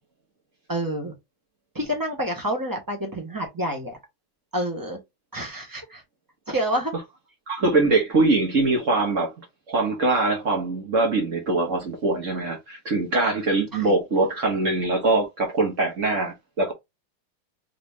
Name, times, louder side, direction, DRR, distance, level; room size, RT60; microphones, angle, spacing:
voice 1, 0.7-1.1 1.7-4.0 4.5-5.0 5.3-6.0 6.5-6.9 7.6-7.7 13.7-13.9, right 1 dB, 15° right, 0.8 m, -28 dB
voice 2, 7.5-16.7, right 2 dB, 45° right, 1.3 m, -23 dB
3.9 x 3.0 x 3.6 m
omnidirectional pair, 2.3 m